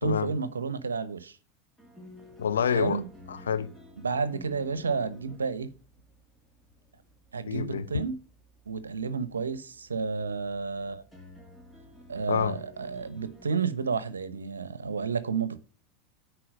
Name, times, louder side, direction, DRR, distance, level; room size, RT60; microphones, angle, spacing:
voice 1, 0.0-1.4 2.7-3.1 4.0-5.7 7.3-8.2 8.7-11.0 12.1-15.6, right 5 dB, 85° right, 0.8 m, -31 dB
sound 1, 1.8-13.6, left 1 dB, 5° left, 2.6 m, -52 dB
voice 2, 2.4-3.0 3.3-3.7 7.5-7.9 12.3-12.5, left 7 dB, 80° left, 0.9 m, -27 dB
8.7 x 4.7 x 6.3 m
hypercardioid pair, 85°, 0 cm